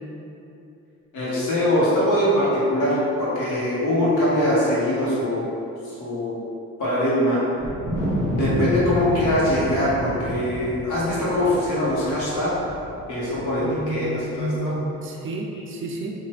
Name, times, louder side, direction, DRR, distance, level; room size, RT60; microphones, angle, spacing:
voice 1, 1.1-5.5 5.8-6.4 6.8-7.4 8.3-12.5 13.1-14.7, left 1 dB, 85° left, -8 dB, 1.0 m, -22 dB
Wind, 7.6-14.1, equal, 50° left, 0.9 m, -29 dB
voice 2, 13.6-16.1, right 2 dB, 45° right, 0 dB, 0.4 m, -30 dB
2.9 x 2.3 x 3.1 m, 2.8 s
cardioid pair, 90°, 30 cm